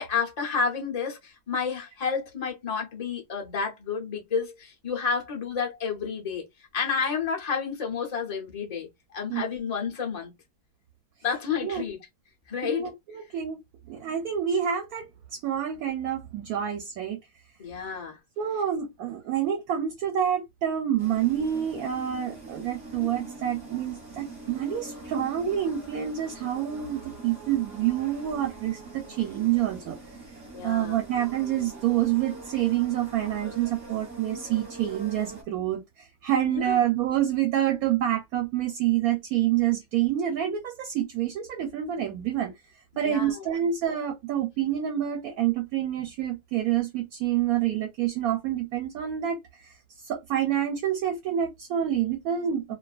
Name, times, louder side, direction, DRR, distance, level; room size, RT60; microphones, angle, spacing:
voice 1, 0.0-6.4 6.7-10.3 11.2-12.0 12.5-12.9 17.6-18.2 23.0-23.1 30.5-31.0 36.5-36.8 43.0-43.5, left 6 dB, 75° left, 0.3 m, -30 dB
voice 2, 12.6-13.6 13.9-17.2 18.4-30.0 30.6-42.5 43.0-49.7 50.0-52.7, right 10 dB, 70° right, 1.0 m, -27 dB
sound 1, 21.0-35.4, right 2 dB, 30° right, 1.0 m, -43 dB
2.5 x 2.4 x 2.3 m
omnidirectional pair, 1.7 m